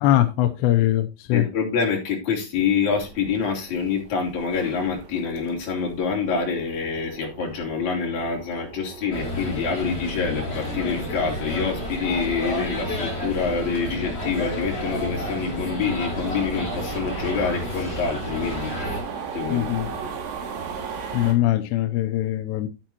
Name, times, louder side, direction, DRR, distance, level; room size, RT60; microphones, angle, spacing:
voice 1, 0.0-1.5 19.5-19.9 21.1-22.7, left 14 dB, 85° left, 2.5 m, -21 dB
voice 2, 1.3-18.7 19.3-20.1 21.0-21.3, left 5 dB, 40° left, 3.6 m, -26 dB
sound 1, 2.9-21.3, right 6 dB, 70° right, 4.3 m, -38 dB
sound 2, 9.1-19.0, left 1 dB, 15° left, 3.1 m, -30 dB
12.0 x 8.9 x 2.9 m
omnidirectional pair, 5.8 m